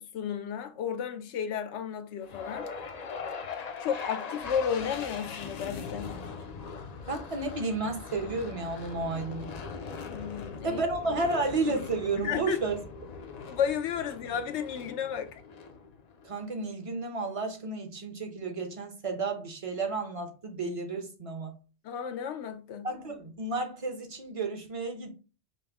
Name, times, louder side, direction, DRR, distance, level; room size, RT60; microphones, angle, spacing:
voice 1, 0.0-2.7 3.8-6.2 10.1-10.8 11.1-11.2 12.2-12.6 13.5-15.4 21.8-22.9, left 8 dB, 85° left, 0.9 m, -33 dB
sound 1, 2.2-16.4, left 5 dB, 50° left, 0.5 m, -41 dB
voice 2, 7.1-9.5 10.6-12.8 16.2-21.5 22.8-25.1, right 3 dB, 35° right, 0.7 m, -32 dB
5.2 x 2.1 x 3.3 m
omnidirectional pair, 1.1 m